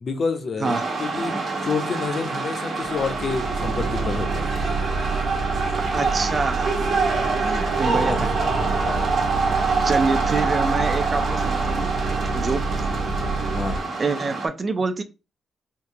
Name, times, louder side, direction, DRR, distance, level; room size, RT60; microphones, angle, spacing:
voice 1, 0.0-1.3 1.6-4.5 8.1-9.2 13.5-13.9, left 4 dB, 45° left, 7 dB, 0.6 m, -29 dB
sound 1, 0.6-14.5, right 4 dB, 60° right, 1.1 m, -26 dB
sound 2, 2.8-13.8, right 3 dB, 85° right, 0.7 m, -28 dB
voice 2, 5.9-6.8 7.4-8.3 9.8-11.9 12.3-12.6 14.0-15.0, right 3 dB, 30° right, 10 dB, 0.4 m, -26 dB
3.5 x 2.7 x 2.7 m, 0.30 s
cardioid pair, 140°, 0 cm